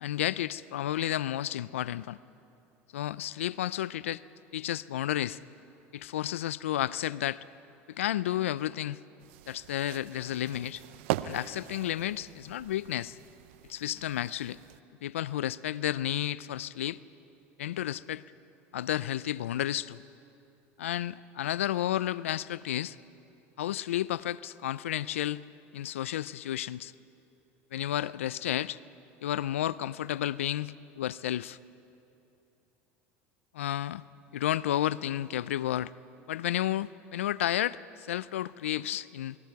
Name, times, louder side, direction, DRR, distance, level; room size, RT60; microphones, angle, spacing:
voice 1, 0.0-2.2 2.9-4.2 4.5-5.4 5.9-7.4 7.9-9.0 9.5-10.8 11.2-13.2 13.7-14.6 15.0-17.0 17.6-18.2 18.7-20.0 20.8-23.0 23.6-25.4 25.7-26.9 27.7-28.8 29.2-31.6 33.5-34.0 34.3-35.9 36.3-39.4, left 12 dB, 90° left, 0.4 m, -32 dB
sound 1, 9.2-14.8, right 14 dB, 75° right, 0.6 m, -40 dB
28.5 x 21.0 x 4.7 m
hypercardioid pair, 90°, 7 cm